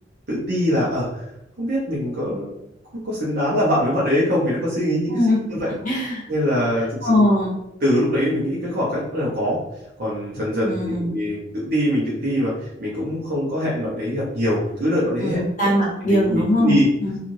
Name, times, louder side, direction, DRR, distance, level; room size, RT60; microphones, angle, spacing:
voice 1, 0.3-1.2 1.6-2.5 3.0-5.7 6.3-7.3 7.8-9.6 10.0-12.5 12.8-15.7 16.0-16.9, equal, 50° right, -7 dB, 0.7 m, -23 dB
voice 2, 5.1-5.4 5.7-6.2 7.0-7.5 10.6-11.1 15.2-17.2, left 1 dB, 45° left, -4 dB, 0.9 m, -21 dB
3.0 x 2.5 x 2.6 m, 0.86 s
head